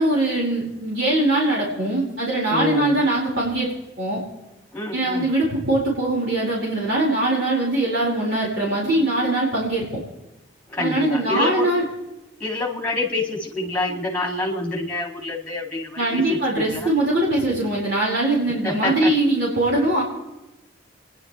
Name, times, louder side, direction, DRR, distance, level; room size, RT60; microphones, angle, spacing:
voice 1, 0.0-3.7 4.0-4.2 4.9-9.8 10.8-11.8 16.0-20.0, right 1 dB, 55° right, -6 dB, 4.8 m, -21 dB
voice 2, 2.5-3.1 4.7-5.3 10.7-11.7 12.4-16.9 18.6-19.1, left 2 dB, 5° left, -1 dB, 2.3 m, -27 dB
29.0 x 11.0 x 3.2 m, 0.99 s
head